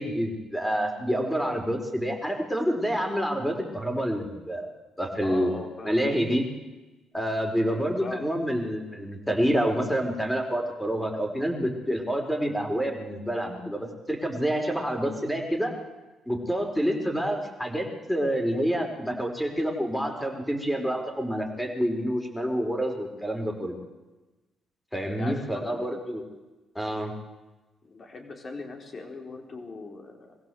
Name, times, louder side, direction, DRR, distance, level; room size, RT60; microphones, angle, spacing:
voice 1, 0.0-4.7 5.0-5.5 5.8-6.4 7.1-15.7 16.3-23.7 24.9-26.2 26.7-27.1, equal, 5° left, 3 dB, 4.6 m, -28 dB
voice 2, 5.2-6.0 7.6-8.3 25.0-25.8 27.8-30.5, left 3 dB, 40° left, 3 dB, 4.5 m, -40 dB
23.5 x 15.5 x 7.9 m, 1.1 s
cardioid pair, 90°, 0 cm